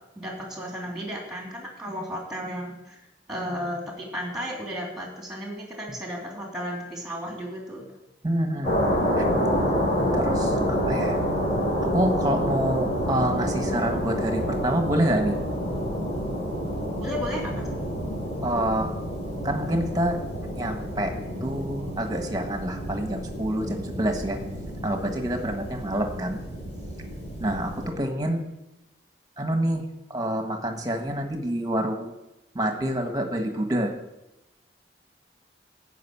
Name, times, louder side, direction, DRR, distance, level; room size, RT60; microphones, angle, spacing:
voice 1, 0.1-3.0 3.3-7.8 17.0-17.5, equal, 5° right, -1 dB, 3.0 m, -34 dB
voice 2, 8.2-8.7 9.2-9.3 10.1-11.2 11.8-15.4 18.4-18.9 19.4-20.2 20.5-21.1 21.4-24.4 24.8-26.4 27.4-28.5 29.4-32.1 32.5-33.9, right 1 dB, 20° right, 5 dB, 1.5 m, -27 dB
sound 1, 8.6-27.9, equal, 35° left, 4.1 m, -28 dB
14.0 x 5.3 x 8.5 m, 0.94 s
head